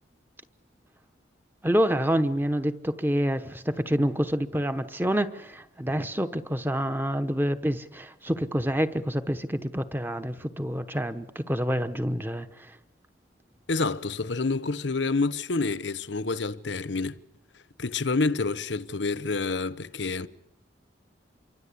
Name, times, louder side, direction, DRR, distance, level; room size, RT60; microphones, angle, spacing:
voice 1, 1.6-12.8, equal, 10° right, 1.0 m, -27 dB
voice 2, 13.7-17.2 17.8-20.3, left 3 dB, 75° left, 1.0 m, -28 dB
27.5 x 24.0 x 8.5 m
head